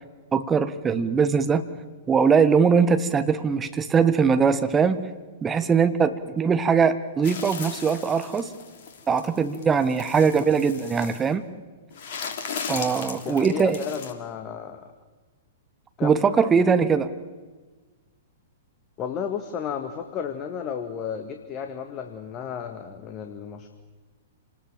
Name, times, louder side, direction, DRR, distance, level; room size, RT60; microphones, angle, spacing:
voice 1, 0.3-1.6 2.1-5.1 5.4-8.5 9.1-11.5 12.7-13.8 16.0-17.1, right 6 dB, 15° right, 10 dB, 1.4 m, -21 dB
sound 1, 7.2-11.3 11.9-14.1, left 5 dB, 50° left, 3.4 m, -37 dB
voice 2, 13.2-14.9 16.0-16.2 19.0-23.7, left 7 dB, 30° left, 6 dB, 1.9 m, -33 dB
28.5 x 20.0 x 7.6 m, 1.3 s
figure-of-eight pair, 105°, 0 cm